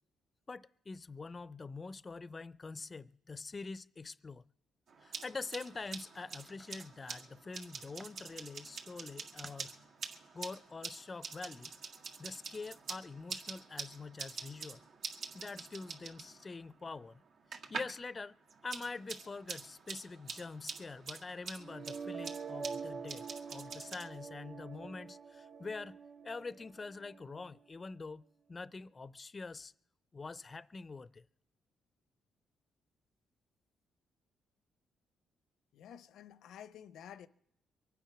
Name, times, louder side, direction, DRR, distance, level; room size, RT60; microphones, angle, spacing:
voice 1, 0.5-4.4 5.0-9.7 10.3-11.7 12.2-14.9 15.3-17.2 17.7-18.4 18.6-26.0 26.2-28.2 28.5-29.7 30.1-31.3, left 4 dB, 30° left, 0.5 m, -45 dB
sound 1, 4.9-18.0 18.3-24.1, right 5 dB, 80° right, 1.9 m, -46 dB
sound 2, 5.6-8.2 8.8-9.6 10.0-10.4, right 2 dB, 20° right, 0.9 m, -59 dB
sound 3, 21.6-27.6, right 5 dB, 55° right, 0.6 m, -46 dB
voice 2, 35.7-37.3, left 9 dB, 80° left, 0.7 m, -51 dB
23.5 x 9.3 x 5.9 m
cardioid pair, 90°, 0 cm